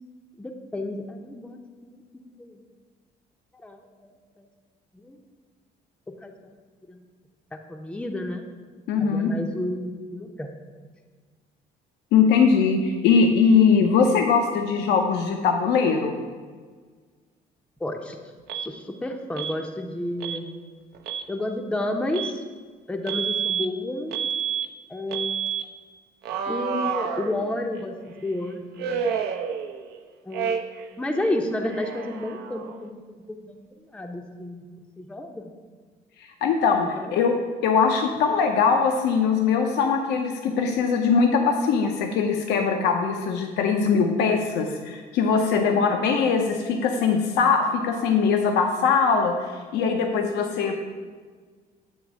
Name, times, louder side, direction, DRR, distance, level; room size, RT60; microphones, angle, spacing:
voice 1, 0.4-2.0 2.4-2.6 3.6-3.8 4.4-4.5 4.9-5.2 6.2-6.5 6.9-7.0 7.7-8.4 9.0-10.5 17.8-18.2 18.6-20.5 21.3-22.4 22.9-24.2 24.9-25.4 26.5-29.2 30.3-33.6 33.9-34.7 35.0-35.5 36.8-37.2 45.5-45.9, left 1 dB, 5° left, 3 dB, 0.5 m, -31 dB
voice 2, 8.9-9.3 12.1-16.1 36.4-37.4 37.6-50.7, left 5 dB, 85° left, 3 dB, 0.6 m, -21 dB
Alarm, 18.5-18.7 19.4-19.6 20.2-20.4 20.9-21.3 22.1-22.4 23.1-23.7 24.1-24.7 25.1-25.6 26.2-27.8 28.8-30.0 30.3-30.9 31.1-32.8, right 7 dB, 70° right, 0.6 m, -29 dB
8.2 x 3.1 x 6.1 m, 1.5 s
cardioid pair, 110°, 17 cm